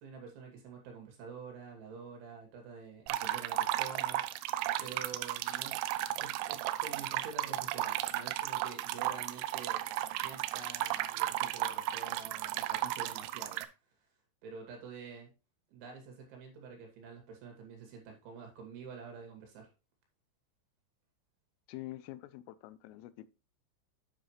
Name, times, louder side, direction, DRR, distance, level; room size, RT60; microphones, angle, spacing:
voice 1, 0.0-4.2 4.8-5.9 6.2-9.8 10.2-13.7 14.4-15.3 15.7-19.7, right 5 dB, 70° right, 4.6 m, -48 dB
sound 1, 3.1-13.6, right 14 dB, 90° right, 3.3 m, -34 dB
voice 2, 21.7-23.3, left 16 dB, 85° left, 3.2 m, -46 dB
9.3 x 7.7 x 3.1 m
omnidirectional pair, 5.7 m